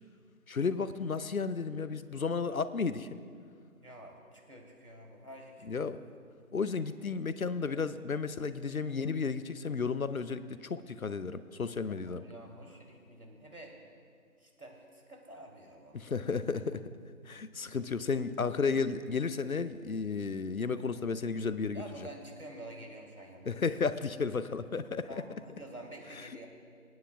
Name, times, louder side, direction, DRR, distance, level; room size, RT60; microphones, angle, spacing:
voice 1, 0.5-3.2 5.7-6.0 6.5-12.2 15.9-16.8 17.3-22.1 23.4-25.2 26.2-26.3, left 5 dB, 70° left, 14 dB, 0.6 m, -33 dB
voice 2, 3.8-5.9 11.9-13.7 14.4-16.2 21.7-23.6 25.1-26.5, right 1 dB, 80° right, 0 dB, 2.9 m, -49 dB
25.5 x 9.5 x 2.3 m, 2.2 s
figure-of-eight pair, 175°, 43 cm